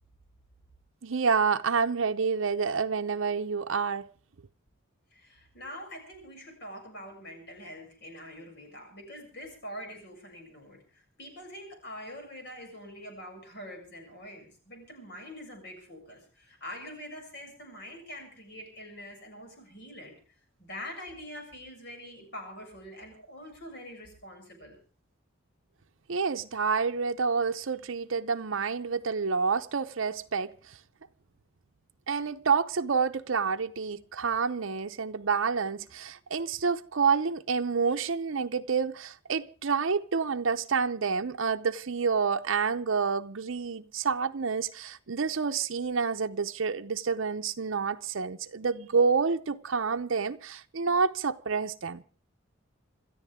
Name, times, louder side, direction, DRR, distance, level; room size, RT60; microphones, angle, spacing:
voice 1, 1.0-4.1 26.1-30.8 32.1-52.0, right 5 dB, 70° right, 0.7 m, -28 dB
voice 2, 5.1-20.1 20.6-24.8, equal, 55° left, 7.1 m, -44 dB
27.5 x 13.5 x 3.6 m
head